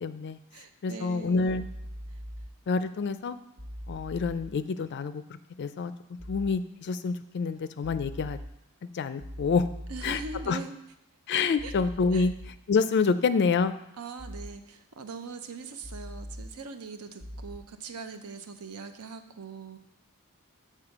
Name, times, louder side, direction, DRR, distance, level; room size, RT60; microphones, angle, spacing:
voice 1, 0.0-0.4 0.8-1.7 2.7-3.4 3.9-5.2 5.6-5.9 6.3-8.4 8.8-9.7 10.0-10.2 10.5-10.6 11.3-12.3 12.7-13.7, left 5 dB, 50° left, 13 dB, 0.4 m, -27 dB
voice 2, 0.5-1.6 9.9-10.7 11.6-11.7 12.1-12.3 14.0-19.8, right 4 dB, 80° right, 8 dB, 0.7 m, -41 dB
sound 1, 1.5-2.5 3.6-4.5 6.2-6.5 7.8-8.5 9.2-10.5 11.6-12.5 14.2-14.5 15.8-16.5 17.2-17.6, equal, 60° right, 1.1 m, -41 dB
6.7 x 4.6 x 5.9 m, 0.80 s
head